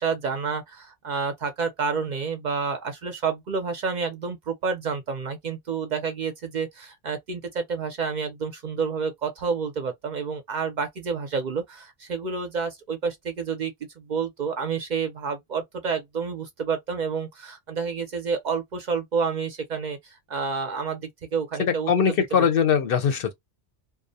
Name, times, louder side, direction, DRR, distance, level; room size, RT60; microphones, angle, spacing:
voice 1, 0.0-22.5, right 5 dB, 55° right, 0.6 m, -29 dB
voice 2, 21.6-23.3, left 7 dB, 65° left, 0.7 m, -21 dB
2.4 x 2.0 x 2.6 m
omnidirectional pair, 1.1 m